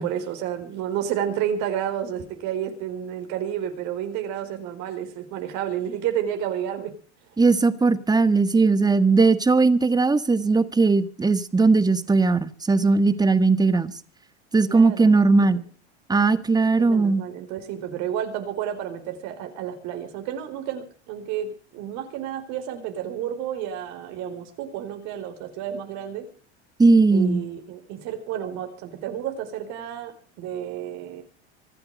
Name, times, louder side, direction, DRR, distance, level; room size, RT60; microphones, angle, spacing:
voice 1, 0.0-6.9 14.7-15.2 16.8-26.2 27.1-31.2, right 10 dB, 55° right, 4.2 m, -31 dB
voice 2, 7.4-13.9 14.5-15.6 16.1-17.2 26.8-27.4, right 3 dB, 10° right, 1.5 m, -19 dB
25.5 x 8.6 x 5.2 m
hypercardioid pair, 95°, 34 cm